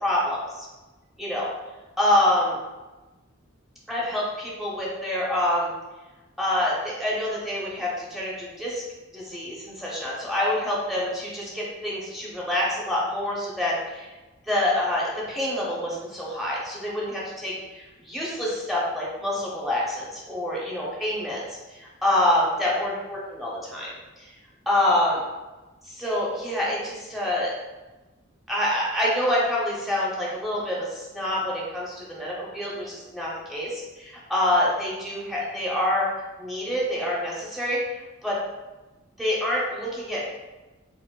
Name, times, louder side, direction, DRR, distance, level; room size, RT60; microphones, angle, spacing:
voice 1, 0.0-0.7 1.2-1.5 2.0-2.6 3.9-5.7 6.4-8.8 9.1-14.1 14.4-23.9 24.2-24.3 24.7-25.2 25.9-27.5 28.5-36.1 36.4-38.4 39.2-40.2, left 1 dB, ahead, -6 dB, 0.6 m, -26 dB
4.3 x 2.2 x 2.2 m, 1.2 s
head